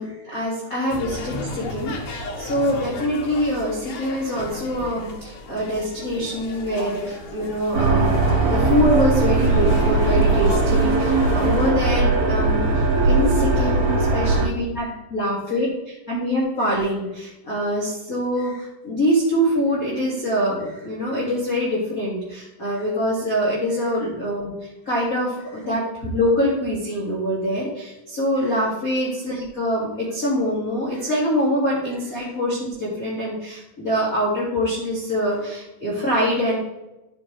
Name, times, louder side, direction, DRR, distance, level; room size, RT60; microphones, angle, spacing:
voice 1, 0.0-8.2 8.5-36.6, equal, 35° left, -6 dB, 1.5 m, -24 dB
sound 1, 0.9-11.7, left 1 dB, 65° left, 3.0 m, -33 dB
sound 2, 7.7-14.5, right 3 dB, 50° right, 3.5 m, -19 dB
12.5 x 6.4 x 3.3 m, 1.0 s
omnidirectional pair, 4.8 m